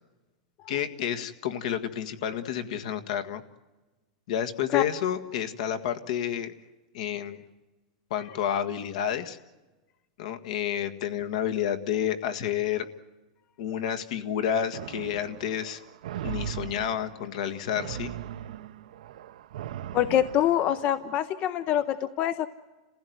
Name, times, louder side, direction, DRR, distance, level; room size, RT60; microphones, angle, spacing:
voice 1, 0.7-3.4 4.3-6.5 6.9-7.4 8.1-9.4 10.2-12.9 13.6-15.8 16.2-18.1, left 9 dB, 65° left, 9 dB, 1.7 m, -30 dB
sound 1, 14.7-21.2, right 10 dB, 75° right, 0.8 m, -39 dB
voice 2, 19.9-22.5, left 11 dB, 35° left, 14 dB, 0.7 m, -25 dB
30.0 x 15.5 x 9.4 m, 1.2 s
supercardioid pair, 150°, 4 cm